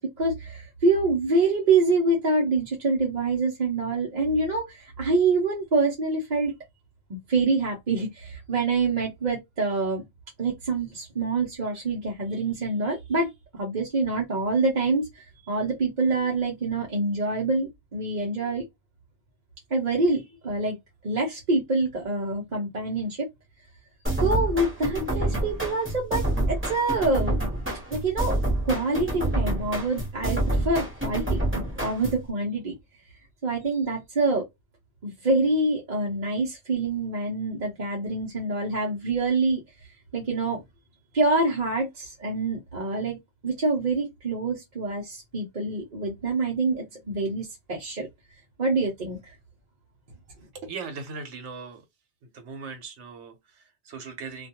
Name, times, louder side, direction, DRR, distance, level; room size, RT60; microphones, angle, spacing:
voice 1, 0.0-6.5 7.1-10.0 10.4-18.6 19.7-20.8 21.0-23.3 24.2-27.5 27.9-28.4 28.6-32.8 33.4-34.5 35.0-39.6 40.1-40.6 41.1-43.2 43.4-48.1 48.6-49.3, right 3 dB, 45° right, 0.8 m, -26 dB
sound 1, 24.1-32.3, right 1 dB, 10° right, 1.0 m, -27 dB
voice 2, 50.5-51.8 52.2-54.5, right 5 dB, 85° right, 1.1 m, -39 dB
2.5 x 2.3 x 2.8 m
omnidirectional pair, 1.2 m